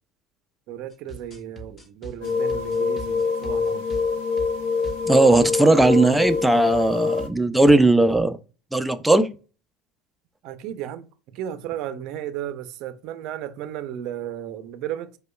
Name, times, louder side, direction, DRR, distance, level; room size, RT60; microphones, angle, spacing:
voice 1, 0.7-3.9 10.4-15.2, right 10 dB, 60° right, 0.5 m, -34 dB
sound 1, 0.9-5.5 5.8-6.0 6.2-6.4 6.7-6.9 7.2-7.9, right 1 dB, 30° left, 0.9 m, -41 dB
sound 2, 2.2-7.3, left 5 dB, 75° left, 0.6 m, -25 dB
voice 2, 5.1-8.4 8.7-9.3, right 2 dB, 5° right, 0.4 m, -17 dB
5.0 x 2.2 x 2.2 m
supercardioid pair, 115°, 0 cm